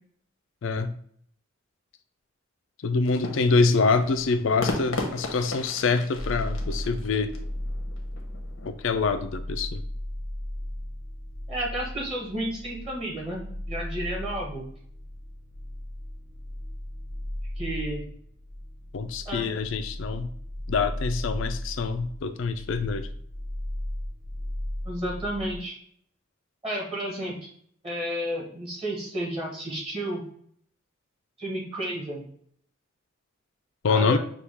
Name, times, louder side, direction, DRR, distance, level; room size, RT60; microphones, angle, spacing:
voice 1, 0.6-1.0 2.8-7.3 8.7-9.8 18.9-20.3 20.7-23.1 33.8-34.2, left 4 dB, 65° left, 10 dB, 0.4 m, -25 dB
sound 1, 3.1-8.7, left 2 dB, 85° left, 0.8 m, -36 dB
sound 2, 6.1-25.6, left 1 dB, 55° right, 0.9 m, -36 dB
voice 2, 11.5-14.6 17.6-18.0 19.2-19.5 24.8-25.7 26.6-27.5 27.8-30.2 31.4-32.2 33.9-34.2, right 1 dB, 30° right, -2 dB, 1.2 m, -32 dB
6.0 x 2.3 x 3.5 m, 0.63 s
head